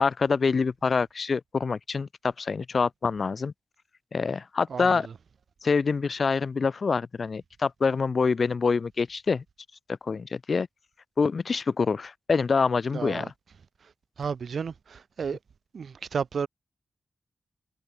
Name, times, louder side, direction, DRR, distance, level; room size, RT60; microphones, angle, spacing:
voice 1, 0.0-3.5 4.1-5.1 5.6-9.4 9.9-10.7 11.2-13.3, left 5 dB, 60° left, 1.6 m, -26 dB
voice 2, 12.9-13.3 14.2-15.4 15.7-16.5, right 6 dB, 75° right, 6.6 m, -32 dB
cardioid pair, 55°, 0 cm